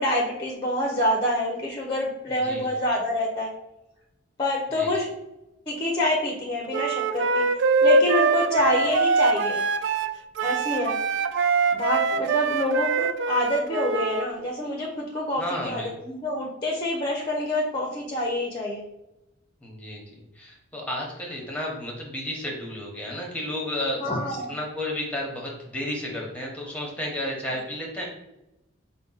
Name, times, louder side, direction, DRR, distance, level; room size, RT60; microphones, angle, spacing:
voice 1, 0.0-3.5 4.4-5.1 5.7-7.4 7.8-9.6 10.4-11.0 11.7-18.8 24.0-24.6 27.5-27.6, left 1 dB, 25° left, -1 dB, 0.6 m, -26 dB
voice 2, 2.3-2.7 4.7-4.9 15.4-15.9 19.6-24.0 24.5-28.0, left 1 dB, 5° left, -2 dB, 1.0 m, -32 dB
Wind instrument woodwind instrument, 6.7-14.3, right 4 dB, 65° right, 0.3 m, -23 dB
5.2 x 2.1 x 4.0 m, 0.93 s
head